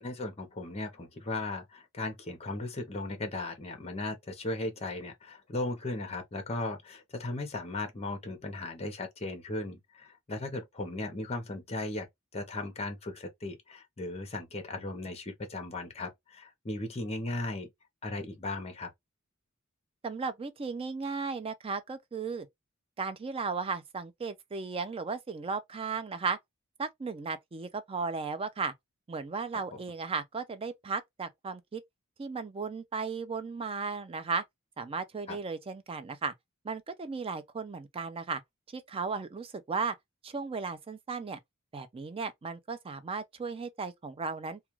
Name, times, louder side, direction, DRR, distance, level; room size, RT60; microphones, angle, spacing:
voice 1, 0.0-12.1 12.3-17.7 18.0-18.9 29.7-29.8 35.3-35.4, left 2 dB, 30° left, 0.7 m, -37 dB
voice 2, 20.0-22.5 23.0-26.4 26.8-28.7 29.1-31.8 32.2-34.4 34.8-36.3 36.6-38.4 38.7-39.9 40.2-41.4 41.7-44.6, right 4 dB, 25° right, 0.4 m, -35 dB
2.4 x 2.2 x 3.0 m
head